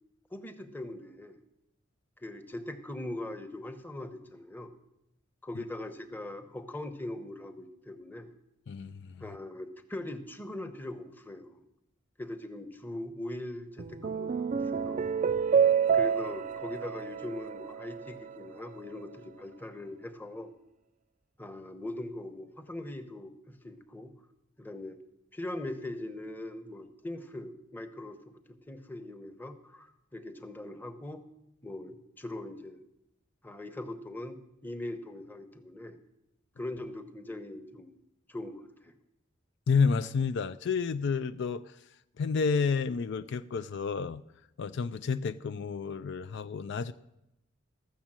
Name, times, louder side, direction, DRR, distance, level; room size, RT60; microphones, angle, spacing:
voice 1, 0.3-1.4 2.2-4.7 5.4-8.3 9.2-11.6 12.2-15.0 15.9-20.5 21.4-24.1 24.6-25.0 25.3-31.2 31.6-32.8 33.4-36.0 36.6-38.0 38.3-38.9, left 1 dB, 10° left, 0.8 m, -41 dB
voice 2, 8.7-9.2 39.7-41.7 42.2-44.2 44.6-46.9, left 5 dB, 60° left, 0.4 m, -30 dB
sound 1, 13.8-18.4, right 7 dB, 40° right, 0.3 m, -28 dB
13.5 x 7.0 x 7.4 m
head